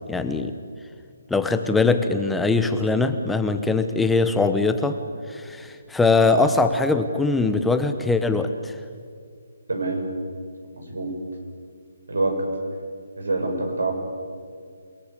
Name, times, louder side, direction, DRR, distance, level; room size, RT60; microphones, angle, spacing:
voice 1, 0.1-0.5 1.3-5.0 5.3-8.7, left 3 dB, 5° left, 7 dB, 1.0 m, -21 dB
voice 2, 9.7-10.0 10.8-11.1 12.1-12.4 13.2-13.9, right 2 dB, 85° right, 3 dB, 7.3 m, -25 dB
29.0 x 19.5 x 8.6 m, 2.1 s
hypercardioid pair, 155°, 0 cm